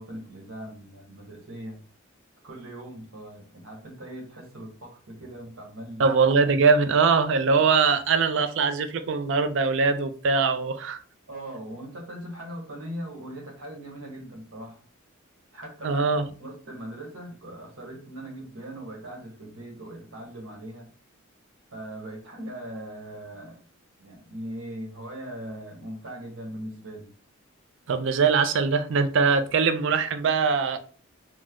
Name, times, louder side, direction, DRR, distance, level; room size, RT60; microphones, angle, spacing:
voice 1, 0.0-1.8 2.4-6.1 11.3-14.8 15.5-20.9 21.7-23.6 24.0-27.1, right 1 dB, 80° right, 1.1 m, -40 dB
voice 2, 6.0-11.0 15.8-16.2 27.9-30.8, right 5 dB, 65° right, 0.4 m, -22 dB
3.1 x 2.0 x 3.6 m
head